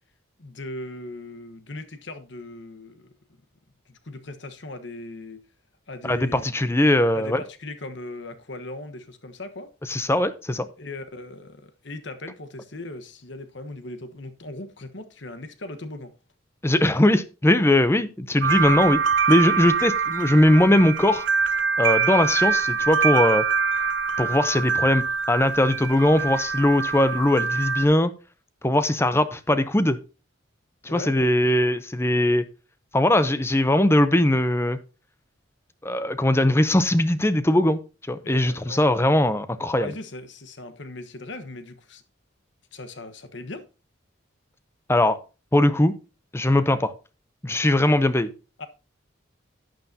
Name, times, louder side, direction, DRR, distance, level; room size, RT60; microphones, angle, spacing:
voice 1, 0.4-3.1 3.9-5.4 5.9-6.4 7.1-9.7 10.8-16.1 30.9-31.1 38.2-38.8 39.7-42.0 42.7-43.7 48.6-48.7, left 2 dB, 60° left, 1.2 m, -38 dB
voice 2, 6.0-7.4 9.9-10.7 16.6-19.0 19.3-21.3 21.8-23.4 24.2-28.1 28.6-30.0 30.8-32.5 32.9-34.8 35.8-37.8 38.1-39.9 44.9-45.2 45.5-45.9 46.3-46.9 47.4-48.3, left 1 dB, 10° left, 0.6 m, -20 dB
sound 1, 18.4-27.8, right 5 dB, 65° right, 0.8 m, -24 dB
11.0 x 9.3 x 2.8 m
head